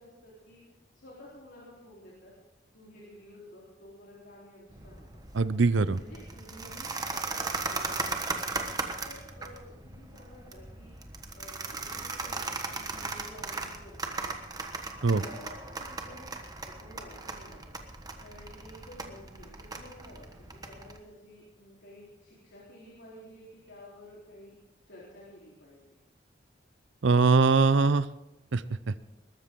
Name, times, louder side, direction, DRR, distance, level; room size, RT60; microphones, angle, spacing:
voice 1, 0.0-2.3 2.7-5.2 6.0-8.5 9.1-14.7 15.0-16.3 16.7-17.8 18.2-24.5 24.9-26.0, left 1 dB, 75° left, -6 dB, 3.8 m, -52 dB
sound 1, 4.7-21.0, right 3 dB, 20° right, 1.2 m, -38 dB
voice 2, 5.3-6.0 15.0-15.2 27.0-28.1 28.5-29.0, right 4 dB, 85° right, 16 dB, 0.6 m, -22 dB
20.5 x 13.5 x 3.8 m, 0.92 s
head